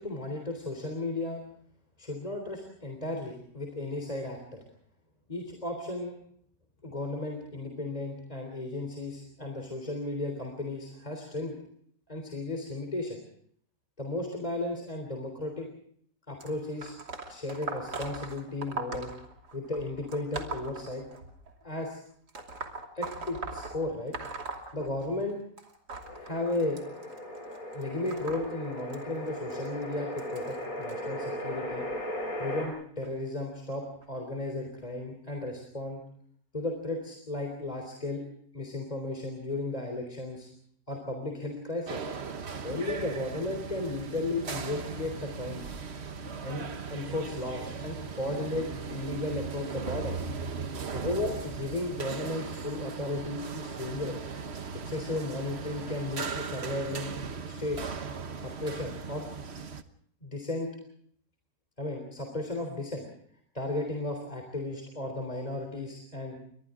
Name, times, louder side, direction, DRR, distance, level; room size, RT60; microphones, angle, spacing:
voice 1, 0.0-1.4 2.0-4.6 5.3-6.1 6.8-11.6 12.1-13.2 14.0-15.7 16.3-16.9 17.3-19.1 19.5-21.0 21.6-22.0 23.0-24.1 24.7-25.4 26.2-26.8 27.7-31.8 32.4-36.0 36.5-38.2 38.5-40.5 40.9-42.1 42.6-45.7 46.4-50.3 50.9-54.2 54.8-57.2 57.4-57.9 58.4-59.3 60.2-60.7 61.8-63.0 63.5-66.4, left 2 dB, 20° left, 3 dB, 3.6 m, -35 dB
sound 1, 16.4-21.5 22.3-25.3 25.6-30.9 31.7-32.0 33.0-33.1 34.0-34.1 34.8-34.9, right 3 dB, 65° right, 3.5 m, -40 dB
sound 2, 26.0-32.7, left 1 dB, 55° left, 5.4 m, -37 dB
sound 3, 41.9-59.8, right 5 dB, 45° right, 1.3 m, -38 dB
29.5 x 24.5 x 3.7 m, 0.64 s
omnidirectional pair, 1.8 m